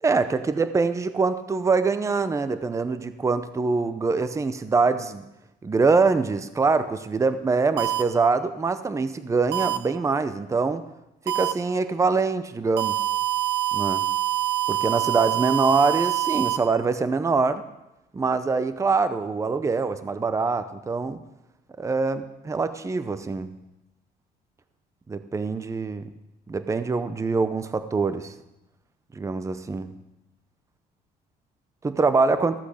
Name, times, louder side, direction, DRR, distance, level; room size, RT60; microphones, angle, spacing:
voice 1, 0.0-5.2 5.6-10.8 11.3-13.0 13.7-14.1 14.7-17.6 18.1-21.2 21.8-23.5 25.1-26.1 26.5-28.3 29.2-29.9 31.8-32.5, right 4 dB, 20° right, 12 dB, 0.7 m, -24 dB
sound 1, 7.8-8.0 9.5-9.8 11.3-11.5 12.8-16.6, right 12 dB, 85° right, 0.9 m, -25 dB
15.0 x 8.4 x 6.4 m, 0.94 s
cardioid pair, 110°, 17 cm